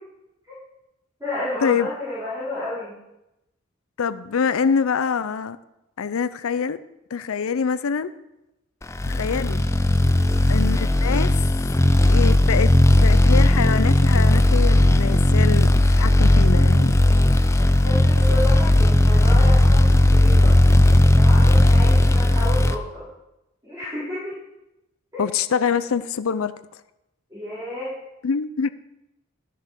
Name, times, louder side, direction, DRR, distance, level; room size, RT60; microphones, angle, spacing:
voice 1, 1.2-3.0 10.1-10.4 17.8-19.8 20.1-20.6 20.9-23.0 23.6-24.4 25.1-25.2 27.3-27.9, left 1 dB, 15° right, -11 dB, 4.7 m, -31 dB
voice 2, 4.0-5.6 6.0-6.8 7.1-8.1 9.0-9.7 10.5-11.3 12.1-12.7 13.0-16.9 25.2-26.5 28.2-28.7, left 6 dB, 85° left, 14 dB, 0.5 m, -25 dB
sound 1, 9.0-22.7, left 1 dB, 15° left, 0.4 m, -16 dB
13.0 x 5.8 x 6.0 m, 0.91 s
head